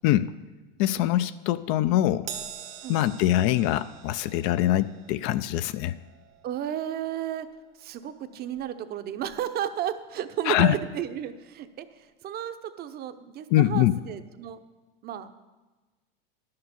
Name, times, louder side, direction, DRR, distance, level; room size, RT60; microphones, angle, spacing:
voice 1, 0.8-2.3 2.9-5.9 10.5-10.7 13.5-13.9, left 13 dB, 50° left, 14 dB, 0.5 m, -23 dB
Crash cymbal, 2.3-8.9 9.2-9.5 10.5-10.6, right 9 dB, 85° right, 1.5 m, -45 dB
voice 2, 6.4-7.5 7.8-14.6 15.0-15.3, right 10 dB, 35° right, 11 dB, 0.7 m, -33 dB
11.0 x 6.7 x 7.0 m, 1.2 s
hypercardioid pair, 115°, 29 cm